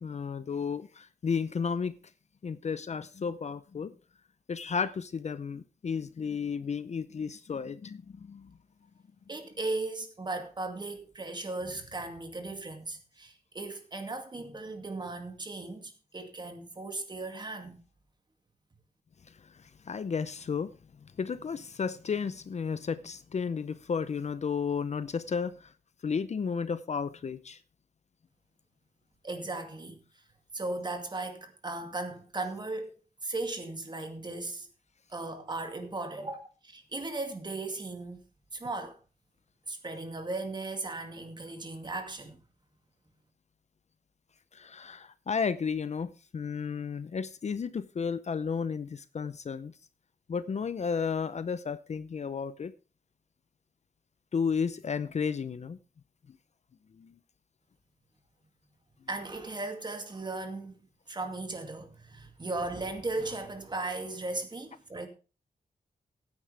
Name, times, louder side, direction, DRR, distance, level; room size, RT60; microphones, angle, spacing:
voice 1, 0.0-1.9 2.4-3.9 4.5-8.5 19.9-20.7 21.2-25.7 26.0-27.6 44.5-49.7 50.3-52.7 54.3-55.8 57.0-57.1, left 6 dB, 45° left, 0.6 m, -33 dB
voice 2, 9.3-17.8 29.2-30.0 30.5-34.7 35.1-38.2 38.5-39.0 39.7-42.4 59.1-65.1, right 2 dB, 30° right, 2.3 m, -37 dB
16.0 x 9.6 x 3.4 m
wide cardioid pair, 135°, 16 cm